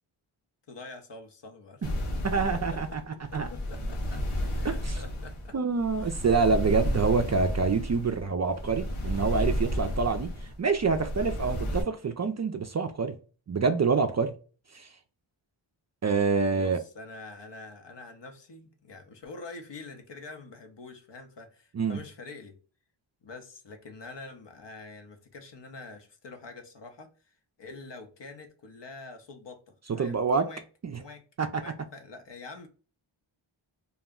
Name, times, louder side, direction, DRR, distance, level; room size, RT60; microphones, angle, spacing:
voice 1, 0.7-2.0 2.4-2.8 3.1-4.3 4.5-5.6 6.0-6.2 16.5-22.6 23.2-30.6 31.0-31.2 31.6-32.7, left 3 dB, 60° left, 0.8 m, -46 dB
sound 1, 1.8-11.8, equal, 85° left, 0.8 m, -32 dB
voice 2, 2.2-3.0 3.3-3.5 4.8-5.0 5.5-13.2 13.5-14.3 14.7-14.9 16.0-16.8 21.7-22.0 30.0-30.5 30.8-31.0 31.4-31.6, right 4 dB, 35° right, 0.4 m, -26 dB
2.4 x 2.1 x 3.5 m
cardioid pair, 55°, 50 cm